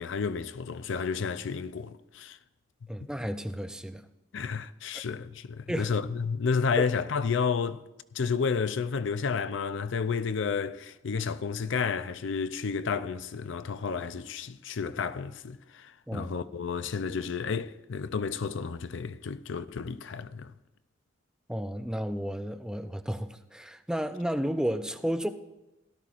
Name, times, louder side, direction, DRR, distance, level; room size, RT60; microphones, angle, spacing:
voice 1, 0.0-2.4 4.3-7.8 8.1-20.5, left 5 dB, 65° left, 0.5 m, -31 dB
voice 2, 2.9-4.0 5.7-6.0 6.8-6.9 16.1-16.3 21.5-25.3, equal, 5° right, 0.5 m, -32 dB
17.5 x 12.5 x 2.5 m
head